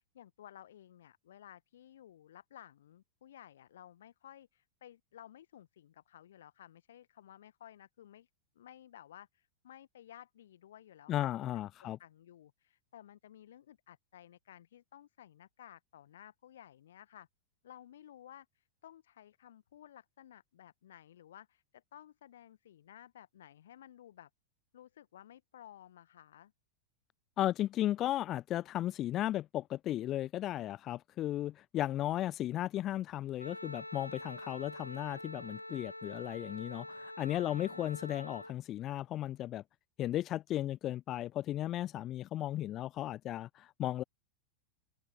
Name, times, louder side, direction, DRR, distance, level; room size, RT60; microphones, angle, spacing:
voice 1, 0.0-8.3 8.5-11.3 11.5-17.3 17.6-24.3 24.7-26.5 37.5-38.0, left 11 dB, 60° left, 1.1 m, -56 dB
voice 2, 11.1-12.0 27.4-39.6 40.0-44.0, left 13 dB, 30° left, 0.5 m, -35 dB
Wind instrument woodwind instrument, 33.4-38.6, left 1 dB, 85° left, 1.0 m, -46 dB
figure-of-eight pair, 90°, 0 cm